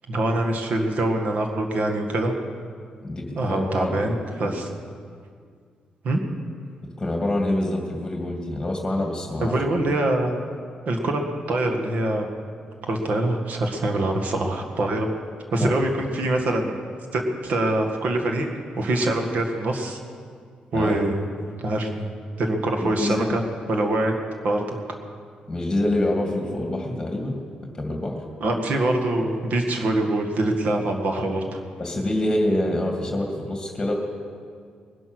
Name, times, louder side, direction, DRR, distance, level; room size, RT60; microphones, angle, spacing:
voice 1, 0.1-2.3 3.4-4.7 6.0-6.2 9.4-10.3 10.9-11.2 11.5-12.3 12.8-15.1 15.5-16.8 17.1-20.0 20.7-21.3 21.6-23.4 23.7-24.1 24.4-24.8 28.4-31.6, right 1 dB, 60° right, 3 dB, 1.9 m, -24 dB
voice 2, 3.0-4.5 7.0-9.5 15.6-15.8 20.7-21.0 22.8-23.4 25.5-28.2 31.8-33.9, left 1 dB, 15° left, 1 dB, 2.4 m, -26 dB
20.0 x 11.0 x 6.3 m, 2.1 s
cardioid pair, 105°, 3 cm